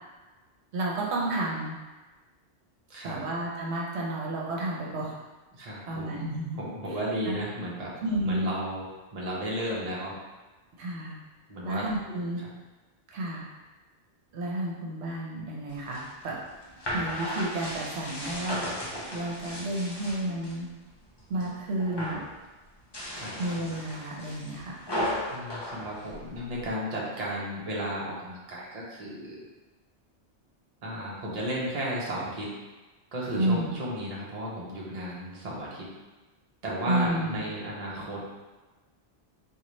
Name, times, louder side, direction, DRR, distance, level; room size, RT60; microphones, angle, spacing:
voice 1, 0.7-1.8 3.0-5.1 5.9-6.6 6.9-7.0 7.3-7.4 8.0-8.5 10.8-11.2 11.6-12.4 13.1-13.5 14.3-16.4 16.9-18.7 19.1-20.7 21.3-22.2 23.3-24.8 33.4-33.7 36.9-37.4, right 1 dB, 75° right, -4 dB, 1.0 m, -31 dB
voice 2, 2.9-3.2 5.5-6.1 6.5-7.9 8.2-8.8 9.1-10.1 11.5-11.9 12.4-12.5 23.1-23.3 25.3-29.4 30.8-32.5 33.1-35.8 36.6-38.2, equal, 40° right, -5 dB, 0.8 m, -34 dB
sound 1, 15.7-20.6 21.0-21.5 21.8-22.3 22.8-26.7, equal, 30° left, 0.6 m, -35 dB
3.9 x 2.4 x 3.1 m, 1.2 s
omnidirectional pair, 1.2 m